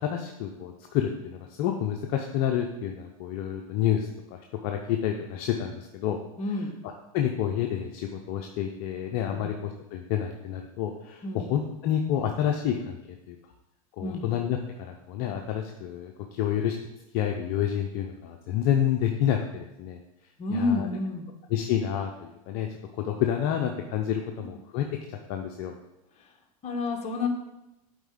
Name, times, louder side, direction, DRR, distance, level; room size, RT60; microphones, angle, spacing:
voice 1, 0.0-6.2 7.1-13.0 13.3-13.4 14.0-16.8 17.1-20.0 20.5-20.9 21.5-22.7 23.0-25.7, left 10 dB, 50° left, 3 dB, 0.6 m, -29 dB
voice 2, 6.4-6.7 9.3-9.5 11.2-11.4 14.0-14.2 20.4-21.3 26.6-27.3, left 3 dB, 35° left, 3 dB, 1.2 m, -29 dB
8.0 x 4.4 x 3.7 m, 0.92 s
hypercardioid pair, 105°, 20 cm